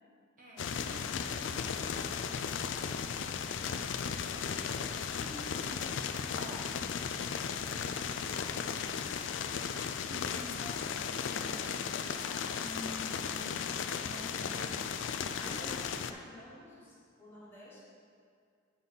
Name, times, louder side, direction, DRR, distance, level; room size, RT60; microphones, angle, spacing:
voice 1, 0.4-1.9 5.1-8.6 10.1-13.6 14.0-14.7 15.5-16.3, left 1 dB, 40° right, -4 dB, 1.1 m, -49 dB
sound 1, 0.6-16.1, left 6 dB, 65° left, 0.4 m, -36 dB
voice 2, 15.4-17.8, left 1 dB, 10° left, -7 dB, 1.5 m, -50 dB
8.8 x 4.1 x 5.6 m, 2.2 s
head